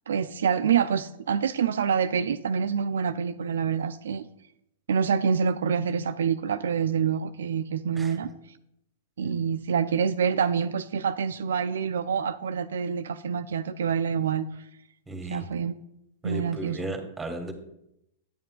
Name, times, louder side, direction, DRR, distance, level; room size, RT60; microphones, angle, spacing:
voice 1, 0.1-4.3 4.9-8.3 9.2-14.5 15.3-15.8 16.2-16.8, right 7 dB, 70° right, 11 dB, 0.3 m, -26 dB
voice 2, 15.1-15.5 16.2-17.5, right 1 dB, 10° right, 6 dB, 1.2 m, -35 dB
9.1 x 8.6 x 2.3 m, 0.80 s
figure-of-eight pair, 100°, 0 cm